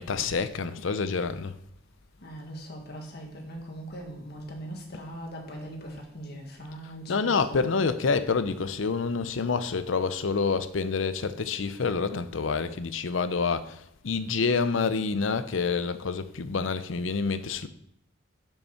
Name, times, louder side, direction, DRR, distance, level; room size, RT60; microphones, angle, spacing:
voice 1, 0.0-1.5 7.1-17.7, left 4 dB, 75° left, 0.6 m, -27 dB
voice 2, 2.2-7.6, right 1 dB, 55° left, 1.7 m, -40 dB
7.1 x 5.5 x 5.8 m
head